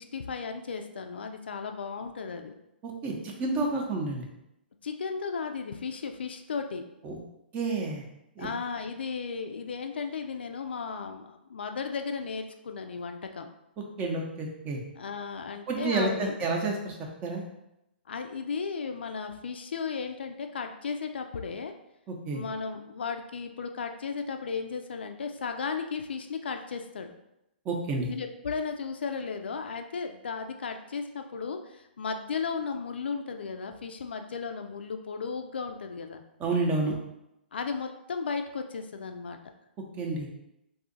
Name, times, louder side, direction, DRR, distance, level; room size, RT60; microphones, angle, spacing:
voice 1, 0.1-2.6 4.8-6.8 8.4-13.5 15.0-16.4 18.1-21.7 22.3-27.2 28.1-36.2 37.5-39.4, left 5 dB, 70° left, 6 dB, 0.4 m, -35 dB
voice 2, 2.8-4.3 7.0-7.2 7.5-8.0 8.4-8.5 13.8-14.8 15.7-16.9 17.2-17.4 22.1-22.4 27.7-28.1 36.4-36.9 40.0-40.3, right 3 dB, 25° right, 1 dB, 0.6 m, -30 dB
2.7 x 2.4 x 3.8 m, 0.85 s
figure-of-eight pair, 120°, 6 cm